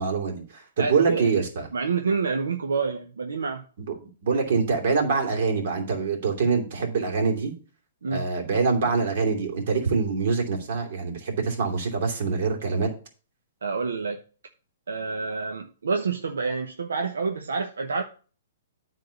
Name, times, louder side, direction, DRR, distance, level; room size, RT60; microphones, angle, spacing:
voice 1, 0.0-1.6 3.8-4.0 4.2-7.5 8.1-12.9, right 5 dB, 60° right, 2 dB, 2.8 m, -25 dB
voice 2, 0.8-1.4 1.7-3.6 8.0-8.3 13.6-14.2 14.9-18.0, right 5 dB, 90° right, 4 dB, 1.0 m, -28 dB
9.2 x 3.7 x 7.0 m, 0.38 s
hypercardioid pair, 145°, 0 cm